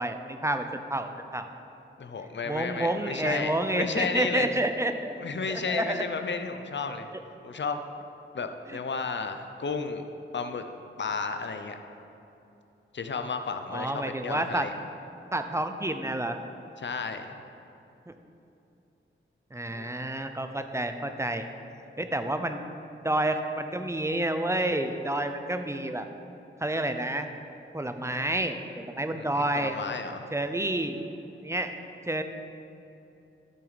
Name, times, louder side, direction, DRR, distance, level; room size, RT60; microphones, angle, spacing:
voice 1, 0.0-1.5 2.4-5.2 5.5-6.1 7.1-7.2 8.7-8.8 13.7-14.7 15.3-16.4 18.1-18.2 19.5-21.4 22.0-22.6 23.0-26.1 26.6-27.3 27.7-29.7 30.3-31.0 31.4-31.8 32.1-32.2, right 1 dB, 15° right, 7 dB, 0.6 m, -29 dB
voice 2, 2.0-4.5 5.2-7.1 7.4-7.8 8.3-10.0 10.3-10.6 11.0-11.8 12.9-14.7 16.8-17.3 19.7-20.0 29.1-30.3, left 4 dB, 60° left, 7 dB, 0.7 m, -33 dB
12.0 x 6.4 x 4.1 m, 2.8 s
cardioid pair, 60°, 21 cm